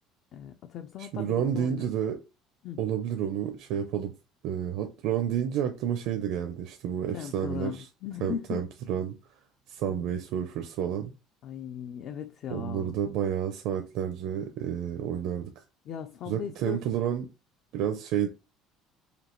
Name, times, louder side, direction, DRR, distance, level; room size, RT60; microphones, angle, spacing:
voice 1, 0.3-1.9 2.6-2.8 7.1-8.6 9.9-10.1 11.4-12.9 15.9-16.8, left 9 dB, 45° left, 0.4 m, -38 dB
voice 2, 1.0-2.2 2.8-4.1 4.4-7.8 8.2-9.1 9.7-11.1 12.5-15.6 16.3-17.3 17.7-18.3, right 9 dB, 60° right, 0.5 m, -30 dB
5.1 x 2.8 x 3.0 m
cardioid pair, 170°, 0 cm